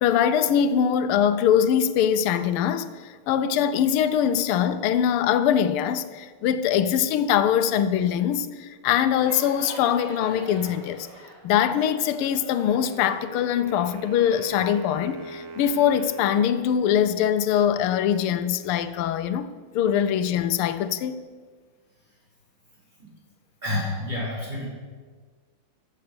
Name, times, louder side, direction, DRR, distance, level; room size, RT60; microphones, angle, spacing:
voice 1, 0.0-2.9 3.3-11.1 11.4-21.2, left 9 dB, 90° left, 1.6 m, -22 dB
sound 1, 9.2-14.3, right 1 dB, 55° right, 3.1 m, -43 dB
Wind instrument woodwind instrument, 12.6-17.6, right 2 dB, 80° right, 2.1 m, -41 dB
voice 2, 23.6-24.7, left 1 dB, 20° right, 4.3 m, -28 dB
14.5 x 6.8 x 6.7 m
omnidirectional pair, 2.3 m